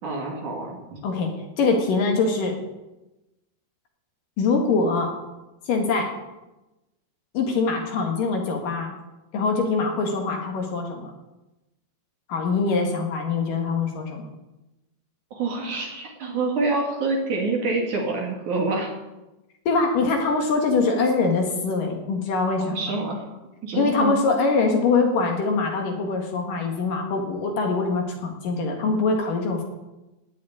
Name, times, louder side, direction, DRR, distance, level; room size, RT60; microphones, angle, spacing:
voice 1, 0.0-1.0 15.3-18.9 22.6-23.3 23.6-24.2, right 3 dB, 50° right, 0 dB, 3.6 m, -27 dB
voice 2, 1.6-2.5 4.4-5.2 5.7-6.1 7.3-8.9 9.3-11.1 12.3-14.2 19.7-23.0 23.8-29.6, left 4 dB, 60° left, 2 dB, 3.1 m, -23 dB
17.5 x 6.4 x 9.7 m, 1.0 s
omnidirectional pair, 4.6 m